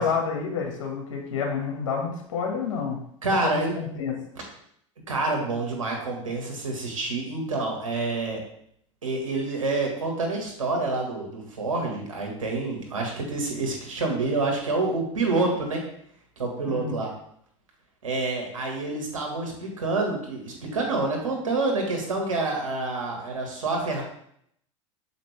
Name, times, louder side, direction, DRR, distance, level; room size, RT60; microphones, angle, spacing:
voice 1, 0.0-3.0 3.4-4.2 16.7-16.9, left 6 dB, 70° left, 1 dB, 2.0 m, -29 dB
voice 2, 3.2-3.7 5.1-8.4 9.0-15.8 16.4-17.1 18.0-24.0, right 3 dB, 85° right, 1 dB, 1.9 m, -27 dB
6.7 x 5.1 x 3.5 m, 0.69 s
hypercardioid pair, 85°, 16 cm